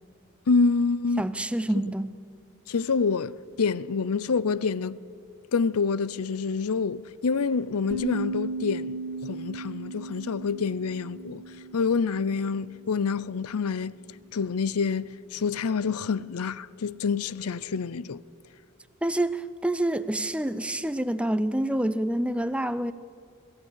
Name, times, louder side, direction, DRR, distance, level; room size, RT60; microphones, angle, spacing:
voice 1, 0.5-1.3 2.7-5.0 5.5-11.4 11.7-13.9 14.3-18.2, left 5 dB, 80° left, 0.6 m, -27 dB
voice 2, 1.2-2.1 19.0-22.9, right 1 dB, 5° right, 0.5 m, -27 dB
sound 1, 7.9-13.0, right 3 dB, 85° right, 1.8 m, -36 dB
22.5 x 15.5 x 8.2 m
head